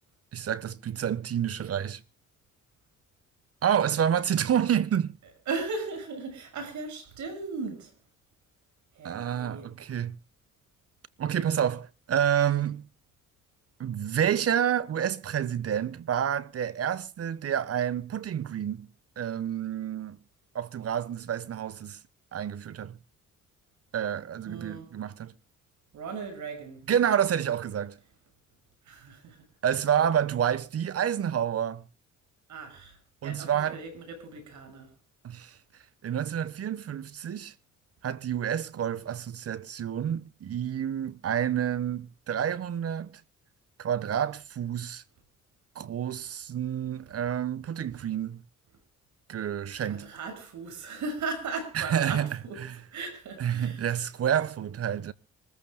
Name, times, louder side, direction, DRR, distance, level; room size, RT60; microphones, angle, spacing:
voice 1, 0.3-2.0 3.6-5.2 9.0-10.2 11.2-12.9 13.8-18.9 19.2-20.2 20.5-22.0 22.3-23.0 23.9-25.3 26.9-28.0 29.6-31.8 33.2-33.8 35.2-35.5 36.0-37.5 38.0-43.2 43.8-45.0 45.7-48.4 49.3-50.1 51.8-52.8 53.4-55.1, right 9 dB, 50° right, 1.1 m, -29 dB
voice 2, 5.5-7.9 8.9-9.7 24.4-24.9 25.9-26.8 28.8-29.5 32.5-34.9 49.9-52.6 52.9-54.0, right 4 dB, 70° right, 6.7 m, -37 dB
26.0 x 14.5 x 2.2 m
cardioid pair, 90°, 30 cm